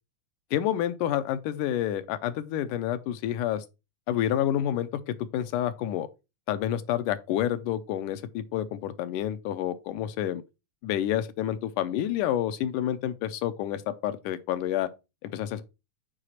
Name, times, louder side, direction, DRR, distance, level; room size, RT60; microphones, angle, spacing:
voice 1, 0.5-3.7 4.1-6.1 6.5-10.4 10.8-14.9 15.2-15.6, left 11 dB, 85° left, 2.3 m, -29 dB
6.5 x 4.9 x 5.6 m
omnidirectional pair, 3.7 m